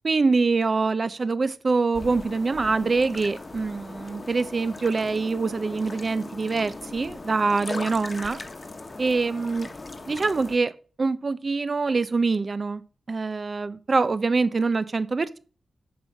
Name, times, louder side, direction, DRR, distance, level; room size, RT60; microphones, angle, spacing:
voice 1, 0.0-8.4 9.0-9.7 10.1-12.8 13.1-15.4, right 4 dB, 40° right, 0.7 m, -24 dB
sound 1, 1.9-10.6, left 3 dB, 35° left, 1.2 m, -39 dB
8.0 x 6.4 x 6.4 m
wide cardioid pair, 95°, 0 cm